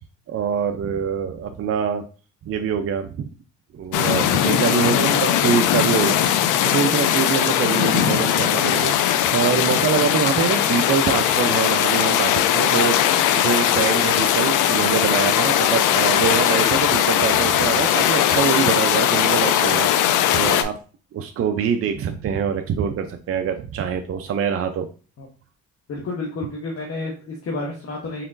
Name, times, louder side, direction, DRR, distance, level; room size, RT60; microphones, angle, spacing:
voice 1, 0.3-2.0 2.5-3.2 3.7-13.0 13.3-19.9 20.3-20.8 21.1-24.9, right 7 dB, 50° right, 6 dB, 0.5 m, -24 dB
sound 1, 3.9-20.6, left 10 dB, 85° left, 0.5 m, -19 dB
voice 2, 4.8-6.1 25.2-25.3 25.9-28.2, left 2 dB, 50° left, -1 dB, 1.1 m, -31 dB
4.2 x 3.8 x 2.5 m, 0.37 s
cardioid pair, 90°, 30 cm